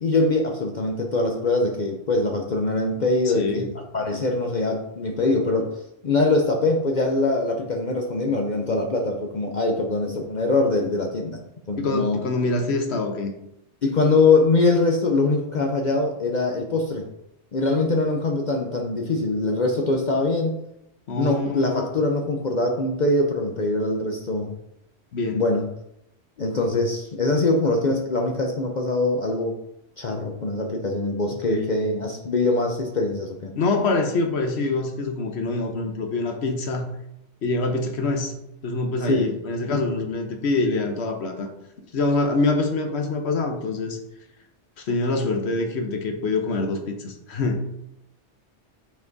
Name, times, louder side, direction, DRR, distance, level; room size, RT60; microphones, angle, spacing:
voice 1, 0.0-5.7 6.0-11.4 11.7-12.2 13.8-17.1 17.5-20.6 21.2-24.5 25.3-25.7 26.4-29.6 30.0-33.5 39.1-39.3, left 2 dB, 45° left, 2 dB, 0.7 m, -23 dB
voice 2, 3.2-3.7 11.8-13.3 21.1-21.9 25.1-25.4 31.5-31.7 33.6-36.9 37.4-38.3 38.6-41.5 41.9-44.0 44.9-47.7, left 3 dB, 65° left, 4 dB, 1.1 m, -25 dB
5.7 x 4.4 x 3.9 m, 0.81 s
omnidirectional pair, 1.2 m